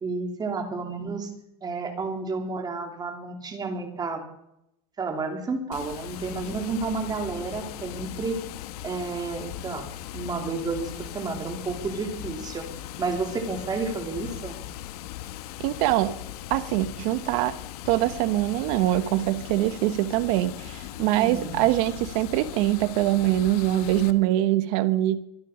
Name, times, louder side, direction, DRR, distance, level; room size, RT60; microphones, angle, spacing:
voice 1, 0.0-1.3 1.6-4.2 5.0-8.4 8.8-9.9 10.1-12.7 13.0-14.6 21.2-21.6, right 4 dB, 20° right, 3 dB, 3.2 m, -31 dB
Water, 5.7-24.1, left 13 dB, 85° left, 1.2 m, -39 dB
voice 2, 15.6-16.2 16.5-17.6 17.8-25.2, right 15 dB, 65° right, 11 dB, 1.2 m, -23 dB
24.0 x 10.5 x 5.0 m, 0.79 s
supercardioid pair, 145°, 19 cm